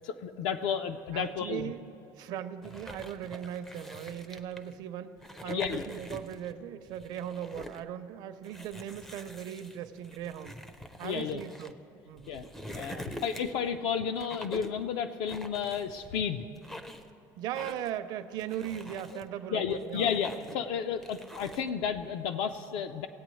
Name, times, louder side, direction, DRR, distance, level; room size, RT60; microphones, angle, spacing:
voice 1, 0.1-1.7 5.4-5.8 11.0-11.4 12.3-12.4 12.7-16.4 19.1-19.2 19.5-23.1, left 7 dB, 65° left, 7 dB, 0.5 m, -32 dB
voice 2, 1.1-1.9 2.2-5.2 5.4-10.5 11.0-11.7 12.0-12.4 12.9-13.0 17.4-20.1 20.5-20.6, right 10 dB, 55° right, 11 dB, 0.5 m, -38 dB
sound 1, 2.6-4.7 5.2-6.5 6.9-7.8 8.4-11.7 12.2-13.7 14.2-14.8 15.3-16.2 16.5-17.1 17.5-18.0 18.4-19.2 19.7-20.7 21.0-21.7, equal, 5° left, 0.4 m, -45 dB
19.0 x 8.3 x 3.1 m, 2.8 s
cardioid pair, 165°, 8 cm